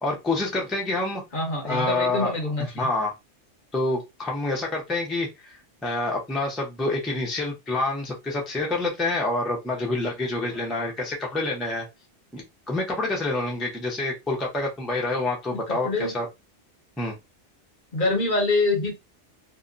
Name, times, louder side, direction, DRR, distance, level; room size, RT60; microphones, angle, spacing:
voice 1, 0.0-1.2 1.6-3.1 3.7-5.6 5.8-11.9 12.3-16.3 17.0-17.1, left 2 dB, ahead, -2 dB, 0.4 m, -27 dB
voice 2, 1.3-2.9 15.5-16.1 17.9-19.0, left 2 dB, 50° left, 3 dB, 0.8 m, -25 dB
2.7 x 2.1 x 2.4 m, 0.22 s
omnidirectional pair, 1.2 m